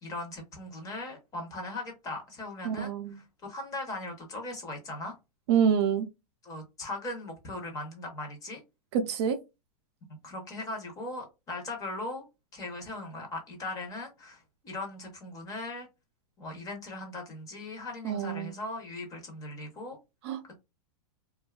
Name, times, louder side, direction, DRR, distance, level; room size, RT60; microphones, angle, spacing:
voice 1, 0.0-5.1 6.4-8.6 10.2-12.2 12.5-14.4 14.6-15.9 16.4-20.0, left 2 dB, 20° left, 0.7 m, -39 dB
voice 2, 2.6-3.2 5.5-6.1 8.9-9.4 18.0-18.5 20.2-20.4, right 7 dB, 45° right, 0.4 m, -26 dB
2.6 x 2.3 x 2.2 m
supercardioid pair, 155°, 19 cm